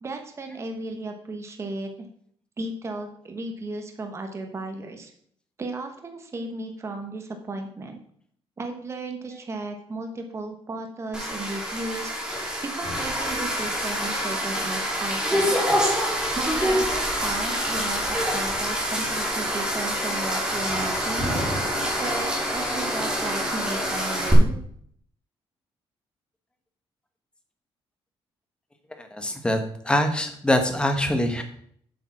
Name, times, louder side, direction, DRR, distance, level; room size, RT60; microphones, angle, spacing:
voice 1, 0.0-2.1 2.6-5.1 5.6-8.0 8.6-15.7 16.3-21.3 22.0-24.6, right 2 dB, 25° right, 5 dB, 1.1 m, -35 dB
sound 1, 11.1-24.3, equal, 10° right, 2.9 m, -26 dB
voice 2, 29.0-29.6 29.8-31.4, left 1 dB, 10° left, 6 dB, 1.3 m, -23 dB
7.5 x 7.1 x 5.9 m, 0.64 s
cardioid pair, 145°, 10 cm